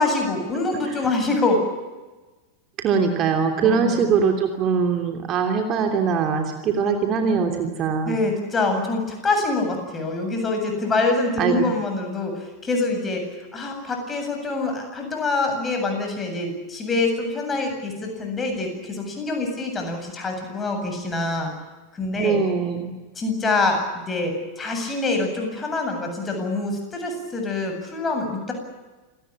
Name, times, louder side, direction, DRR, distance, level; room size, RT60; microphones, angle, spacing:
voice 1, 0.0-1.6 3.6-4.1 7.2-7.6 8.0-13.2 13.5-21.5 21.9-22.4 23.2-23.8 24.1-28.5, left 3 dB, 15° left, 4 dB, 7.9 m, -25 dB
voice 2, 2.8-8.2 11.4-11.6 22.2-23.0, right 6 dB, 30° right, 4 dB, 3.0 m, -22 dB
28.0 x 19.0 x 8.9 m, 1.2 s
figure-of-eight pair, 90°, 0 cm